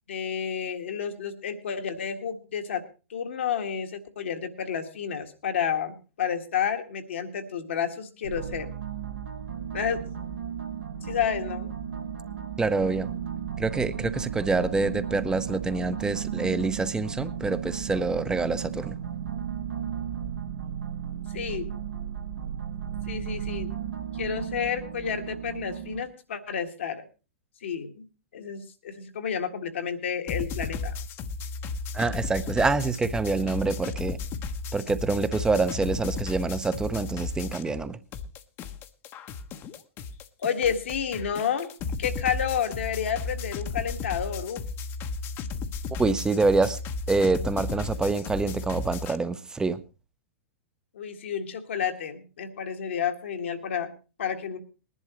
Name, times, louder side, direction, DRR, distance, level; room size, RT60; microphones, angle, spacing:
voice 1, 0.1-2.8 3.1-8.7 9.7-10.0 11.0-11.7 21.3-21.7 23.1-23.8 24.1-27.0 27.6-28.0 28.3-30.9 40.4-41.7 42.0-44.6 50.9-53.9 54.2-54.6, left 8 dB, 65° left, 6 dB, 1.7 m, -30 dB
sound 1, 8.2-26.0, right 8 dB, 75° right, 1.9 m, -34 dB
voice 2, 12.6-13.1 13.6-19.0 31.9-34.2 34.7-38.0 46.0-46.8 47.1-49.8, right 3 dB, 10° right, 13 dB, 0.8 m, -26 dB
Music loop, 30.3-37.9 38.1-49.2, left 4 dB, 35° left, 1.0 m, -34 dB
21.0 x 11.0 x 3.1 m, 0.32 s
figure-of-eight pair, 100°, 7 cm